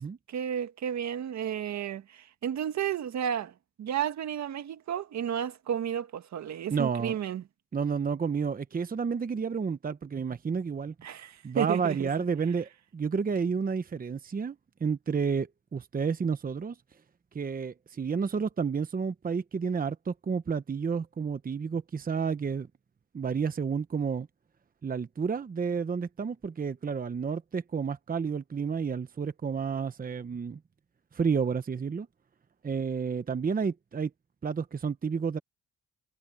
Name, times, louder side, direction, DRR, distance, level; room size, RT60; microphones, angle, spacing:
voice 1, 0.3-7.4 11.0-12.1, right 9 dB, 65° right, 1.8 m, -32 dB
voice 2, 6.7-7.2 7.7-10.9 11.4-16.8 17.3-22.7 23.1-24.3 24.8-30.6 31.1-32.1 32.6-34.1 34.4-35.4, right 6 dB, 30° right, 1.0 m, -30 dB
cardioid pair, 90°, 30 cm